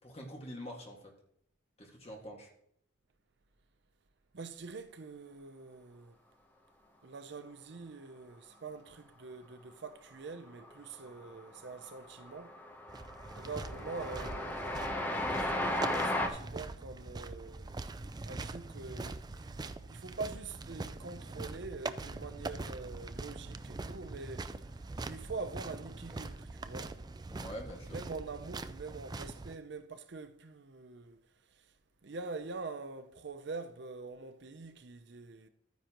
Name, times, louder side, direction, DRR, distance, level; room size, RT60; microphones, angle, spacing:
voice 1, 0.0-1.1 1.8-2.5 27.3-28.0, equal, 30° left, 1.9 m, -45 dB
voice 2, 4.3-6.2 7.0-12.5 13.4-17.7 18.2-24.6 25.0-26.9 27.9-31.2 32.0-35.5, right 4 dB, 60° right, 0.6 m, -45 dB
Train, 10.6-11.1 11.4-16.3, left 1 dB, 10° left, 0.9 m, -35 dB
sound 1, 12.9-29.6, right 3 dB, 20° right, 0.3 m, -43 dB
12.5 x 9.4 x 3.0 m
head